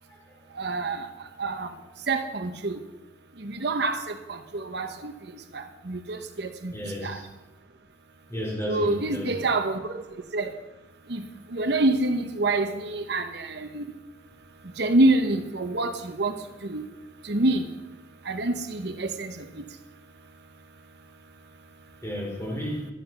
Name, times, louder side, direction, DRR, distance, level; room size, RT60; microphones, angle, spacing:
voice 1, 0.6-1.1 1.4-1.7 2.1-2.8 3.4-5.1 5.5-6.7 7.0-7.2 8.7-10.0 10.3-10.5 11.1-11.2 11.5-13.9 14.8-16.3 16.6-16.8 17.2-17.7 18.3-19.6, right 2 dB, 70° right, 7 dB, 1.0 m, -26 dB
voice 2, 6.7-7.2 8.3-9.4 22.0-22.9, equal, 15° left, -2 dB, 4.3 m, -33 dB
12.0 x 10.5 x 6.7 m, 1.0 s
head